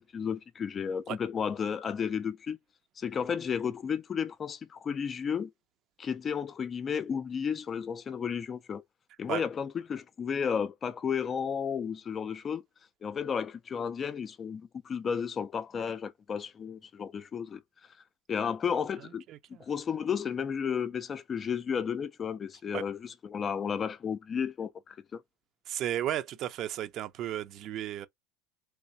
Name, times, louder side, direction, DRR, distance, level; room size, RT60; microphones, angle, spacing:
voice 1, 0.0-2.6 3.0-5.5 6.0-8.8 9.2-12.6 13.0-17.6 18.3-19.2 19.6-25.2, left 7 dB, 30° left, 0.4 m, -33 dB
voice 2, 19.3-19.6 22.7-22.8 25.7-28.1, right 12 dB, 50° right, 0.7 m, -34 dB
3.4 x 3.1 x 2.7 m
supercardioid pair, 100°, 0 cm